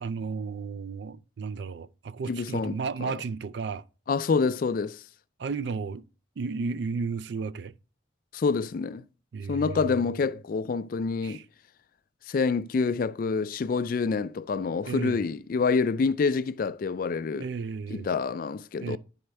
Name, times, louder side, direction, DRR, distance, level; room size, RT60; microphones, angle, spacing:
voice 1, 0.0-3.8 5.4-6.0 6.4-7.7 9.3-9.9 11.2-11.4 14.8-15.2 17.3-18.1 18.8-19.0, right 4 dB, 60° right, 0.4 m, -33 dB
voice 2, 2.3-3.2 4.1-5.0 8.3-9.0 9.5-11.4 12.3-17.5 17.9-19.0, left 4 dB, 45° left, 0.3 m, -27 dB
10.5 x 4.3 x 3.3 m
head